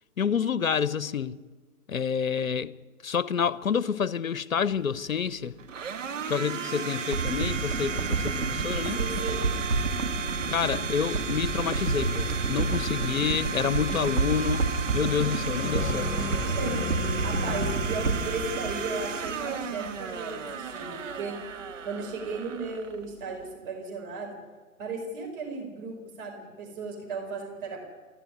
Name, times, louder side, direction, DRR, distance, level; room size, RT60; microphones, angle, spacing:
voice 1, 0.2-1.4 1.9-2.8 3.0-5.6 6.3-9.0 10.5-16.2, left 7 dB, 65° left, 1.0 m, -28 dB
Domestic sounds home sounds, 4.7-23.5, right 6 dB, 55° right, 1.8 m, -34 dB
sound 1, 7.1-19.6 19.9-20.0, right 3 dB, 80° right, 2.9 m, -30 dB
sound 2, 7.9-18.5, left 7 dB, 35° left, 2.6 m, -38 dB
voice 2, 8.8-9.4 16.5-16.8 17.2-21.4 21.8-24.4 24.8-27.8, right 4 dB, 35° right, 5.1 m, -35 dB
29.5 x 12.5 x 9.6 m
figure-of-eight pair, 130°, 44 cm